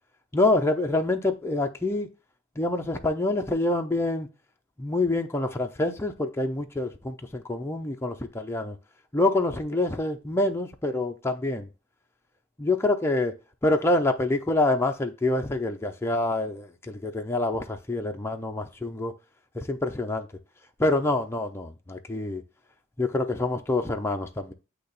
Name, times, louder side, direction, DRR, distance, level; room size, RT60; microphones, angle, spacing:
voice 1, 0.3-2.1 2.6-4.3 4.8-8.8 9.1-11.7 12.6-13.4 13.6-19.1 19.5-20.3 20.8-22.4 23.0-24.5, left 2 dB, 10° left, 0.6 m, -26 dB
8.4 x 2.9 x 3.9 m
head